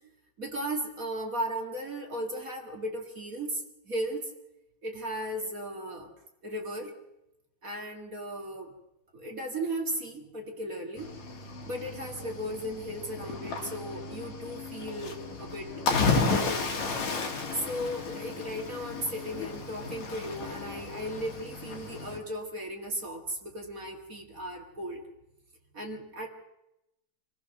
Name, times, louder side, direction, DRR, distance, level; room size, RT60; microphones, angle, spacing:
voice 1, 0.4-4.3 4.8-6.1 6.4-6.9 7.6-8.7 9.1-11.1 11.7-15.8 16.3-16.7 17.5-25.0 25.7-26.3, equal, 30° right, 2 dB, 2.2 m, -36 dB
Cricket / Waves surf, 11.0-22.2, left 4 dB, 65° left, 3.3 m, -33 dB
26.0 x 16.5 x 6.6 m, 0.90 s
omnidirectional pair, 3.6 m